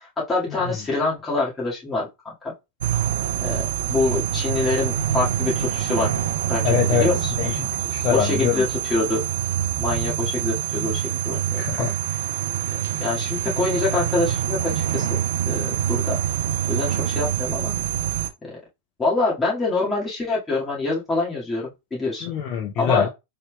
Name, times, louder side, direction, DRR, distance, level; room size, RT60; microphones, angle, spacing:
voice 1, 0.0-2.5 3.4-6.1 6.5-6.6 6.9-7.5 8.1-9.2 9.8-12.2 13.0-15.2 15.5-16.2 16.7-17.8 18.4-18.5 19.0-22.3 22.8-23.1, left 3 dB, 15° left, -6 dB, 1.9 m, -25 dB
sound 1, 2.8-18.3, right 10 dB, 70° right, 0.5 m, -25 dB
voice 2, 6.6-7.1 7.4-8.6 11.6-11.9 22.2-23.1, left 8 dB, 45° left, 1 dB, 0.6 m, -23 dB
4.1 x 3.5 x 2.3 m, 0.24 s
hypercardioid pair, 100°, 0 cm